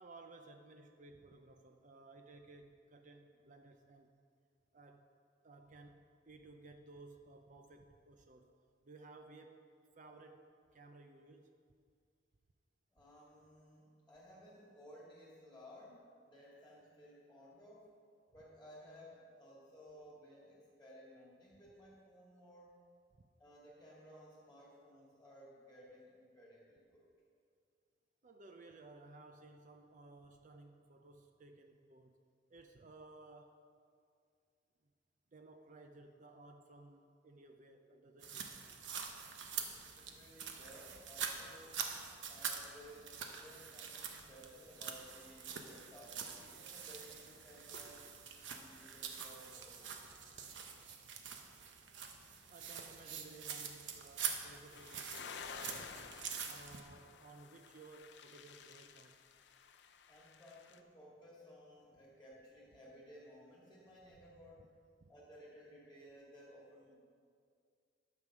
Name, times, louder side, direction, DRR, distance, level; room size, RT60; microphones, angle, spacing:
voice 1, 0.0-4.2 4.7-5.1 5.4-8.5 8.8-9.6 9.9-10.5 10.7-11.5 28.2-32.2 32.5-33.6 35.3-38.5 52.5-56.2 56.5-59.2 65.0-65.1, right 3 dB, 45° right, 5 dB, 0.6 m, -57 dB
voice 2, 12.9-17.9 18.3-22.8 23.4-27.1 39.9-41.8 42.2-48.0 48.5-50.1 60.1-64.7 65.1-67.0, equal, 5° left, -6 dB, 2.3 m, -58 dB
sound 1, 38.2-56.8, right 6 dB, 80° right, 1.0 m, -45 dB
sound 2, 54.7-60.8, left 6 dB, 65° left, 0.6 m, -52 dB
11.5 x 6.9 x 6.1 m, 2.3 s
head